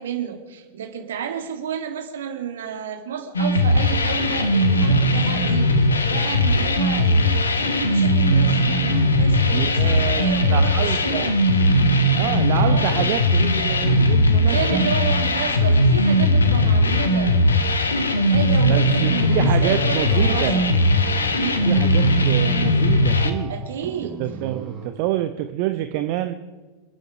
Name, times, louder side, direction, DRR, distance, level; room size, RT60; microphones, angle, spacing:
voice 1, 0.0-11.4 12.6-13.1 14.4-17.4 17.9-20.7 21.3-21.7 23.5-24.2, right 8 dB, 60° right, 6 dB, 2.2 m, -31 dB
sound 1, 3.3-23.3, left 1 dB, 75° left, 1.5 m, -19 dB
voice 2, 9.5-11.3 12.2-14.8 18.7-20.7 21.6-23.5 24.2-26.3, right 13 dB, 45° right, 9 dB, 0.8 m, -27 dB
sound 2, 19.0-24.9, right 3 dB, 25° right, 2.6 m, -37 dB
27.5 x 9.4 x 4.9 m, 1.4 s
figure-of-eight pair, 90°, 0 cm